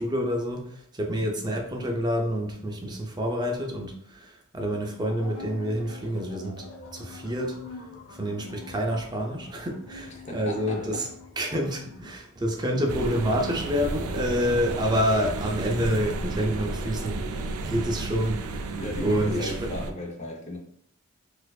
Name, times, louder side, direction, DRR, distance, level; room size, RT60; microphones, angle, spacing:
voice 1, 0.0-7.6 8.1-11.1 11.4-17.3 17.7-18.7 19.0-19.5, equal, 20° right, 0.5 m, -28 dB
sound 1, 5.0-12.1, left 3 dB, 90° left, 0.8 m, -45 dB
voice 2, 10.1-11.1 18.8-20.6, left 1 dB, 30° left, 0.6 m, -36 dB
sound 2, 12.9-19.9, right 3 dB, 80° right, 0.4 m, -32 dB
4.2 x 2.6 x 2.3 m
head